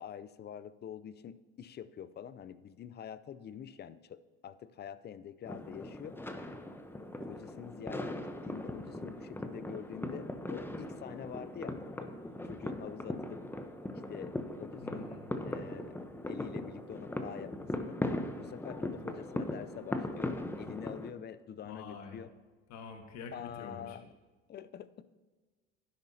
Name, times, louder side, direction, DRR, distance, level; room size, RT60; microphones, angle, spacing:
voice 1, 0.0-6.2 7.2-12.1 12.4-13.4 13.9-15.1 15.4-16.0 16.2-18.0 18.4-22.3 23.3-24.1 24.5-25.0, left 9 dB, 30° left, 15 dB, 0.5 m, -46 dB
sound 1, 5.5-21.1, left 1 dB, 5° left, 0.9 m, -39 dB
voice 2, 14.8-15.2 21.6-22.2 22.7-24.0, left 4 dB, 55° left, 4 dB, 1.6 m, -46 dB
12.0 x 10.5 x 2.8 m, 1.4 s
hypercardioid pair, 80°, 32 cm